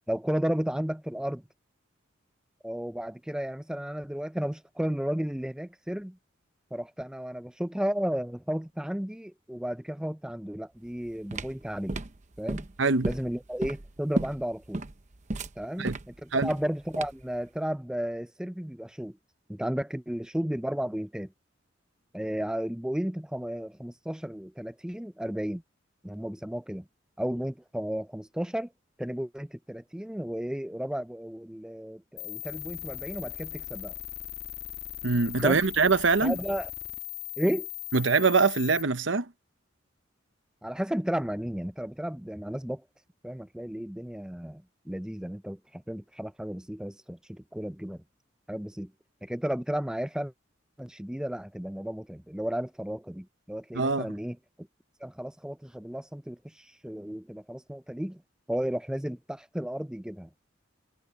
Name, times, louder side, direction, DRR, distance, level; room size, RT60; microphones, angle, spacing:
voice 1, 0.1-1.4 2.6-6.2 6.7-12.0 12.4-12.7 13.0-14.8 15.6-19.2 19.5-21.3 22.1-25.6 26.0-26.8 27.2-28.7 29.0-33.9 35.4-35.6 36.2-36.7 37.4-37.7 40.6-42.8 43.2-48.0 48.5-48.9 49.2-50.3 50.8-54.4 55.0-58.2 58.5-60.3, equal, 5° right, 0.4 m, -33 dB
sound 1, 10.9-17.4, right 2 dB, 40° right, 0.8 m, -34 dB
voice 2, 12.8-13.1 15.8-15.9 16.3-16.5 35.0-36.4 37.9-39.3 53.7-54.1, right 4 dB, 70° right, 0.9 m, -23 dB
sound 2, 32.2-38.8, left 15 dB, 55° left, 2.3 m, -39 dB
head